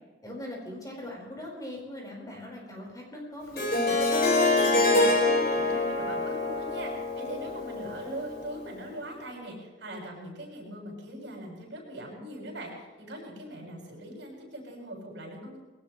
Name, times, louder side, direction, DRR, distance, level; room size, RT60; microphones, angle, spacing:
voice 1, 0.2-4.0, left 1 dB, 20° left, -2 dB, 4.9 m, -40 dB
Harp, 3.6-8.5, left 2 dB, 50° left, 3.5 m, -25 dB
voice 2, 4.6-15.6, right 1 dB, 65° right, -1 dB, 6.9 m, -41 dB
21.0 x 18.5 x 3.3 m, 1.3 s
head